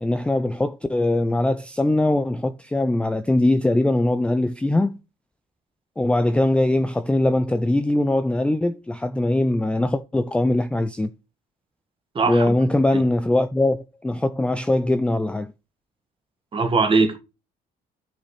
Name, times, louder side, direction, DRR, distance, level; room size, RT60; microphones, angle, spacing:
voice 1, 0.0-5.0 6.0-11.1 12.3-15.5, left 1 dB, 5° left, 0.4 m, -21 dB
voice 2, 12.2-12.5 12.9-13.0 16.5-17.2, right 4 dB, 30° right, 1.7 m, -20 dB
12.0 x 6.0 x 3.2 m
cardioid pair, 110°, 17 cm